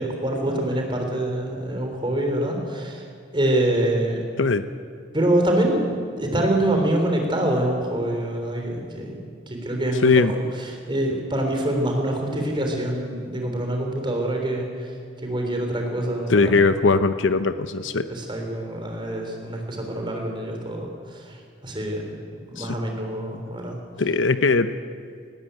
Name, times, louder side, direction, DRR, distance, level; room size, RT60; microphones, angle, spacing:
voice 1, 0.0-3.0 3.3-4.2 5.1-10.4 10.9-14.9 15.2-16.5 18.1-22.2 22.5-23.8, right 1 dB, 25° right, 2 dB, 3.7 m, -25 dB
voice 2, 10.0-10.3 16.3-18.1 22.6-22.7 24.0-24.7, left 4 dB, 80° left, 11 dB, 0.8 m, -19 dB
19.5 x 15.5 x 9.2 m, 2.2 s
head